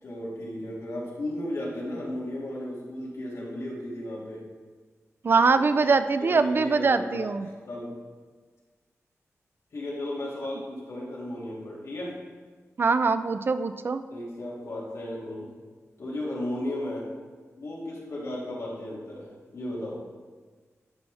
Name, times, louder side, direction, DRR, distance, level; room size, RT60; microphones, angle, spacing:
voice 1, 0.0-4.4 5.5-8.0 9.7-12.2 14.1-15.5 16.0-17.1 17.6-20.0, left 1 dB, 70° left, -5 dB, 2.4 m, -35 dB
voice 2, 5.2-7.5 12.8-14.0, right 4 dB, 45° right, 11 dB, 0.4 m, -23 dB
12.0 x 5.7 x 3.4 m, 1.4 s
wide cardioid pair, 165°, 5 cm